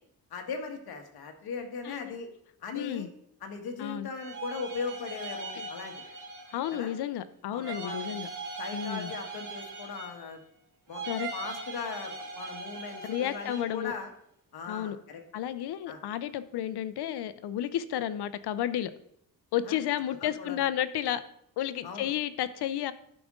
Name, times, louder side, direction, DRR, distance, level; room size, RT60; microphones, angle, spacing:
voice 1, 0.3-2.3 2.6-3.1 3.4-5.9 6.7-6.9 7.5-8.1 8.6-10.4 10.9-14.1 14.5-15.2 15.9-16.0 19.6-19.8 20.2-20.6 21.8-22.1, left 5 dB, 75° left, 4 dB, 1.4 m, -39 dB
voice 2, 2.7-3.1 3.8-4.1 5.6-5.7 6.5-8.3 8.7-9.1 11.1-11.3 13.0-13.9 14.7-15.0 15.3-18.9 19.5-21.2 21.6-22.9, left 11 dB, 90° left, 14 dB, 0.6 m, -32 dB
sound 1, 4.1-7.0 7.6-10.4 10.9-13.9, right 3 dB, 55° right, 2.0 m, -40 dB
11.5 x 5.2 x 3.6 m, 0.72 s
wide cardioid pair, 165°, 38 cm